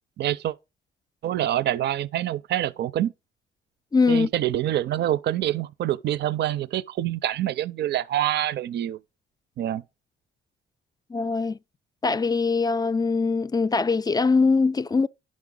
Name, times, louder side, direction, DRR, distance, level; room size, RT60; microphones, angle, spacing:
voice 1, 0.2-0.5 1.2-3.1 4.1-9.0 9.6-9.8, right 12 dB, 60° right, 0.5 m, -26 dB
voice 2, 3.9-4.3 11.1-11.6 12.0-15.1, left 4 dB, 20° left, 0.4 m, -22 dB
10.5 x 6.1 x 3.8 m
cardioid pair, 90°, 20 cm